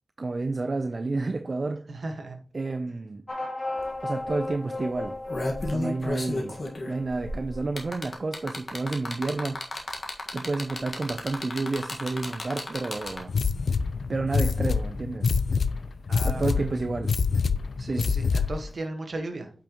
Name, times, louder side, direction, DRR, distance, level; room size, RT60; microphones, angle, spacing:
voice 1, 0.2-1.9 2.5-3.2 4.0-5.2 5.6-6.6 6.9-9.6 10.3-13.3 14.1-15.3 16.2-17.2 17.8-18.1, right 3 dB, 50° right, 0.5 m, -30 dB
voice 2, 1.9-2.4 16.1-16.7 17.8-19.5, right 2 dB, 70° right, 1.4 m, -36 dB
sound 1, 3.3-8.2, left 2 dB, 40° left, 1.2 m, -36 dB
sound 2, 3.8-3.9 4.2-4.4 5.0-13.4 14.6-14.7, left 2 dB, 55° left, 1.6 m, -33 dB
sound 3, 13.3-18.7, left 5 dB, 85° left, 0.4 m, -26 dB
8.6 x 5.6 x 3.0 m
wide cardioid pair, 65°, 0 cm